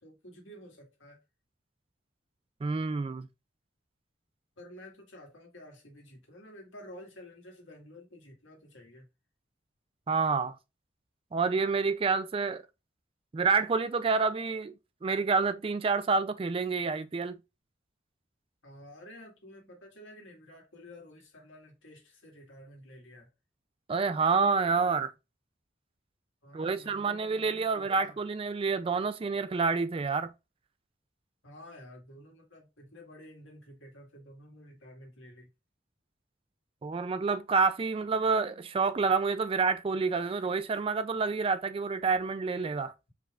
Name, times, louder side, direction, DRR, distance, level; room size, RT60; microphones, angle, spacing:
voice 1, 0.0-1.2 4.6-9.1 18.6-23.3 26.4-28.2 31.4-35.5, left 1 dB, 85° left, 1.8 m, -51 dB
voice 2, 2.6-3.3 10.1-10.6 11.3-12.6 13.3-14.7 15.0-17.4 23.9-25.1 26.5-30.3 36.8-42.9, right 4 dB, 30° right, 0.3 m, -28 dB
4.6 x 3.4 x 2.4 m
head